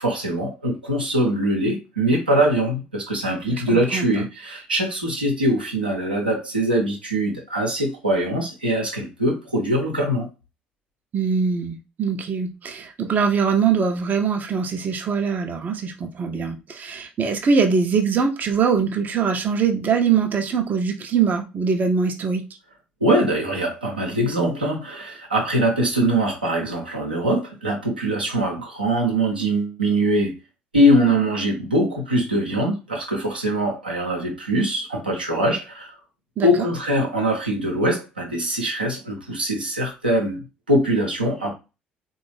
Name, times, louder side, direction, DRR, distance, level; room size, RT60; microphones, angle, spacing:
voice 1, 0.0-10.3 23.0-30.4 30.7-35.9 36.4-41.5, right 1 dB, 85° right, 0.8 m, -22 dB
voice 2, 3.4-4.3 11.1-22.4 36.4-36.5, right 6 dB, 35° right, 0.6 m, -22 dB
3.8 x 2.3 x 3.3 m
figure-of-eight pair, 50°, 5 cm